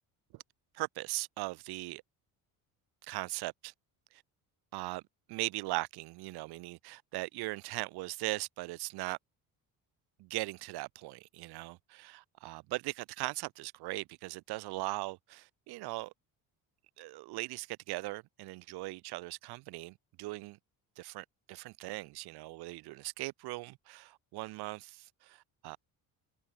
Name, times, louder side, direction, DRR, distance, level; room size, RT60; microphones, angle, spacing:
voice 1, 0.7-2.0 3.0-3.7 4.1-4.2 4.7-5.0 5.3-9.2 10.2-16.1 17.0-20.6 21.0-25.8, right 21 dB, 80° right, 1.5 m, -39 dB
cardioid pair, 95°, 38 cm